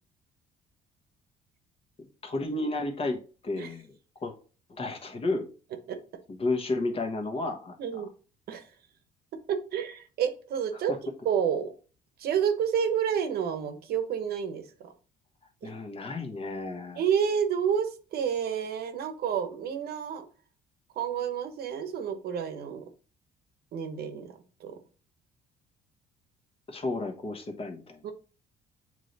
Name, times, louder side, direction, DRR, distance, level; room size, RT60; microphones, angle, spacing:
voice 1, 2.0-3.9 4.2-4.3 4.7-5.5 6.3-7.7 15.6-17.0 26.7-28.1, left 2 dB, 35° left, 1.2 m, -32 dB
voice 2, 7.8-8.1 8.5-8.7 9.5-11.0 11.2-11.7 12.2-14.9 15.6-15.7 17.0-20.2 20.9-22.9 23.7-24.8 28.0-28.1, right 8 dB, 65° right, 1.0 m, -29 dB
7.4 x 3.3 x 4.0 m
cardioid pair, 110°, 17 cm